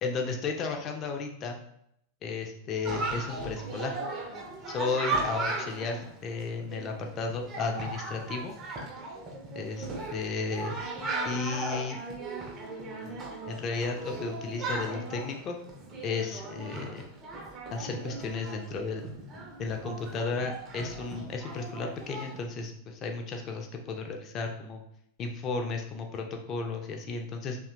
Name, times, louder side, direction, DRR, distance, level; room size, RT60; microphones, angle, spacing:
voice 1, 0.0-1.6 2.2-3.9 4.7-8.5 9.6-10.8 11.2-12.0 13.0-15.6 16.0-17.1 17.7-19.1 19.6-24.8 25.2-27.6, left 4 dB, 30° left, 3 dB, 0.4 m, -34 dB
Chatter, 2.8-22.4, right 3 dB, 25° right, 0.4 m, -37 dB
2.7 x 2.1 x 2.4 m, 0.72 s
figure-of-eight pair, 90°, 0 cm